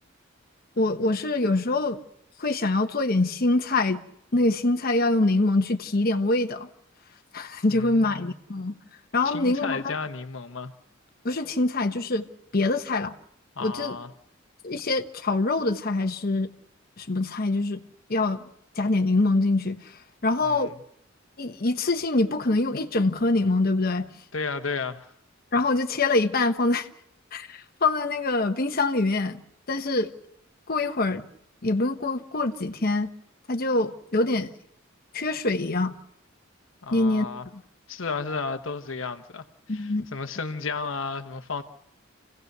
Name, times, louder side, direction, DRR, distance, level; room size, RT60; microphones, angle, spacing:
voice 1, 0.8-2.0 2.4-4.0 4.3-6.7 7.3-8.7 9.1-9.9 11.2-12.3 12.5-13.1 13.6-14.0 14.6-16.5 17.0-17.8 18.1-18.4 18.8-19.8 20.2-20.7 21.4-24.1 25.5-26.9 27.3-29.4 29.7-30.1 30.7-31.2 31.6-33.1 33.5-34.5 35.1-35.9 36.9-37.3 39.7-40.1, left 2 dB, 50° left, 1.1 m, -24 dB
voice 2, 7.7-8.3 9.2-10.7 13.6-14.1 20.4-20.7 24.3-25.1 36.8-37.5 37.9-41.6, left 4 dB, 85° left, 1.1 m, -33 dB
28.0 x 16.5 x 6.7 m
head